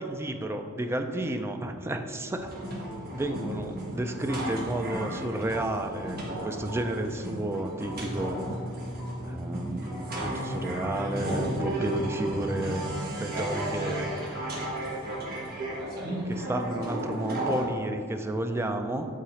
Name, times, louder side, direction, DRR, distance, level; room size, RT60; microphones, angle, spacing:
voice 1, 0.0-2.5 3.1-8.4 9.2-12.8 13.2-14.1 16.2-19.1, right 1 dB, 10° right, 5 dB, 0.3 m, -32 dB
sound 1, 2.4-17.6, right 1 dB, 45° right, 1.3 m, -33 dB
8.3 x 3.7 x 3.1 m, 2.4 s
head